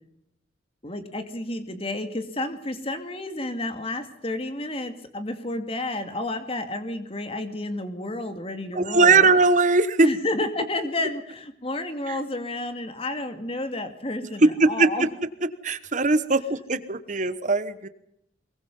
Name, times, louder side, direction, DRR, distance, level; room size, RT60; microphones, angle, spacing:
voice 1, 0.8-9.3 10.0-15.1, left 2 dB, 30° left, 8 dB, 2.4 m, -31 dB
voice 2, 8.7-10.1 12.1-12.2 14.4-14.9 15.6-17.9, right 3 dB, 40° right, 12 dB, 1.2 m, -20 dB
24.0 x 22.0 x 5.5 m, 0.79 s
head